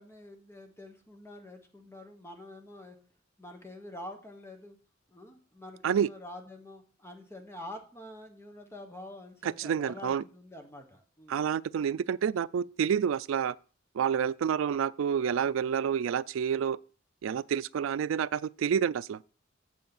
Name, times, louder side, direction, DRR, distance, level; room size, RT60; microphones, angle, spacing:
voice 1, 0.0-3.0 3.4-4.8 5.1-11.5, left 1 dB, 15° left, 1.3 m, -47 dB
voice 2, 9.6-10.2 11.3-13.5 13.9-16.8 17.2-19.2, right 8 dB, 85° right, 0.3 m, -28 dB
8.2 x 4.7 x 7.1 m
head